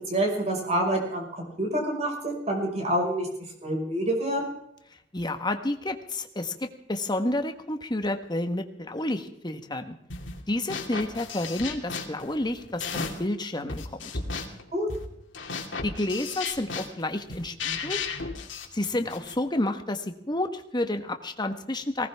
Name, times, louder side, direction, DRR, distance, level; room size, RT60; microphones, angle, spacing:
voice 1, 0.1-3.3 3.6-4.5 14.7-14.9, right 1 dB, 35° right, 1 dB, 5.6 m, -27 dB
voice 2, 5.1-9.9 10.5-14.1 15.8-18.0 18.7-22.1, left 1 dB, 25° left, 6 dB, 1.4 m, -30 dB
sound 1, 10.1-10.4 10.7-13.3 13.7-19.4, left 4 dB, 80° left, 2.8 m, -35 dB
19.5 x 18.5 x 3.6 m, 0.77 s
head